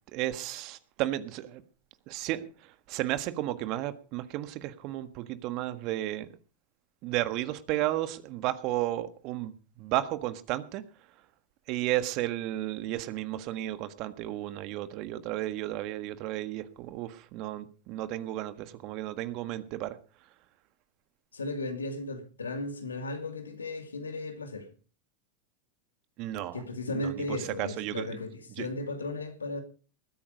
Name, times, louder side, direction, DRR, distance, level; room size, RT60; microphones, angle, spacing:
voice 1, 0.1-1.6 2.1-6.3 7.0-10.8 11.7-20.0 26.2-26.6 26.9-28.2 28.6-28.7, right 15 dB, 50° right, 1.5 m, -33 dB
voice 2, 21.3-24.7 26.5-29.6, left 2 dB, 85° left, 2.5 m, -35 dB
20.0 x 9.0 x 5.1 m
hypercardioid pair, 90°, 0 cm